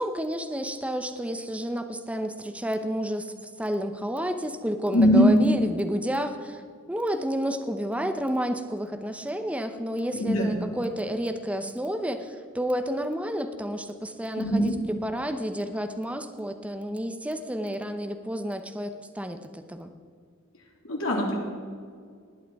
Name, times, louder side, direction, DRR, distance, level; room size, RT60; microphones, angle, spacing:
voice 1, 0.0-3.3 3.6-6.6 6.9-19.9, equal, 5° right, 7 dB, 0.8 m, -30 dB
voice 2, 4.9-5.4 10.1-10.5 14.3-14.7 20.8-21.4, equal, 75° left, -1 dB, 3.1 m, -21 dB
19.0 x 8.7 x 4.7 m, 2.1 s
head